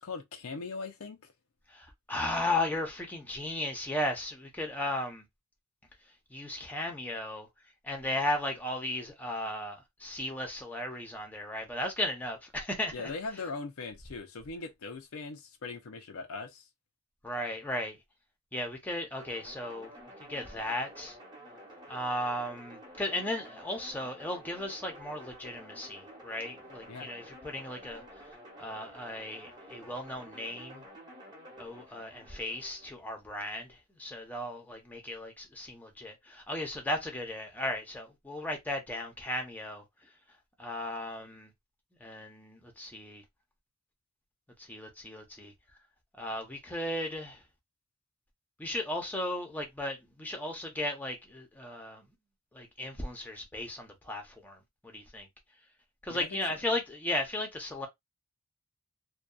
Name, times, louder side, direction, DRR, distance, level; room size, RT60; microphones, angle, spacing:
voice 1, 0.0-1.3 12.9-16.7 26.9-27.1 56.1-56.6, left 4 dB, 75° left, 0.5 m, -40 dB
voice 2, 1.7-5.2 6.3-7.5 7.8-13.1 17.2-18.0 18.5-19.9 20.3-21.2 21.9-28.0 28.6-30.8 31.6-40.1 40.6-41.5 42.0-43.2 44.6-45.5 46.1-47.4 48.6-52.1 52.5-55.3 56.0-57.9, left 1 dB, 10° left, 0.7 m, -36 dB
sound 1, 19.2-32.9, equal, 20° right, 1.0 m, -50 dB
2.7 x 2.2 x 2.3 m
head